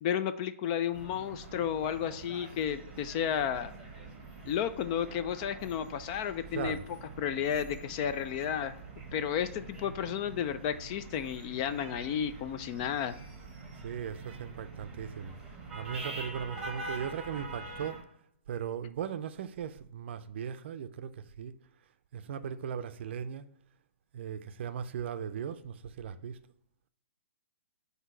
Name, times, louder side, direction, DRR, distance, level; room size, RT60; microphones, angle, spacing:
voice 1, 0.0-3.7 4.5-6.8 7.2-8.8 9.1-13.2, left 9 dB, 30° left, 0.4 m, -32 dB
sound 1, 0.9-18.0, right 3 dB, 10° right, 1.4 m, -45 dB
voice 2, 6.5-6.9 13.8-15.3 15.7-18.1 18.5-21.5 22.1-23.5 24.1-26.4, right 8 dB, 55° right, 0.5 m, -38 dB
7.9 x 2.8 x 4.5 m
hypercardioid pair, 145°, 7 cm